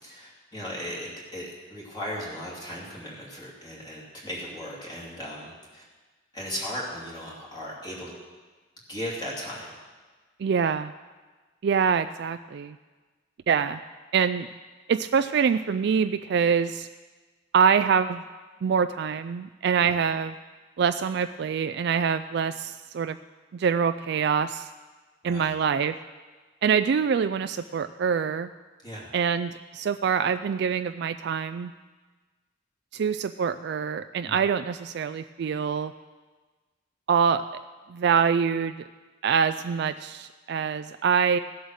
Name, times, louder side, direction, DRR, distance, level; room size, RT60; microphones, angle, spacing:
voice 1, 0.0-5.8 6.3-8.1 8.9-9.8 19.8-19.9 25.2-25.5 28.8-29.1 34.3-34.4, equal, 20° left, -5 dB, 2.8 m, -37 dB
voice 2, 10.4-10.9 11.6-12.8 13.5-13.8 14.1-14.5 14.9-16.9 17.5-18.2 18.6-20.3 20.8-23.2 23.5-24.7 25.2-26.0 26.6-28.5 29.1-31.7 32.9-35.9 37.1-37.4 37.9-38.7 39.2-41.4, right 6 dB, 60° right, 11 dB, 0.3 m, -25 dB
15.5 x 8.1 x 6.4 m, 1.3 s
head